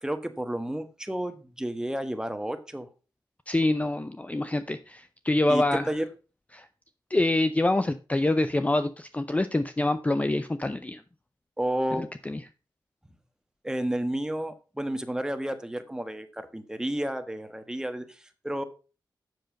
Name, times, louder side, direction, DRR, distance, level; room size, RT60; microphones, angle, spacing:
voice 1, 0.0-2.9 5.5-6.0 11.6-12.1 13.6-18.6, right 1 dB, 10° right, 9 dB, 1.3 m, -31 dB
voice 2, 3.5-5.9 6.5-6.7 7.1-11.0 11.9-12.4, left 2 dB, 20° left, 11 dB, 0.6 m, -26 dB
7.9 x 6.7 x 5.2 m, 0.34 s
cardioid pair, 75°, 8 cm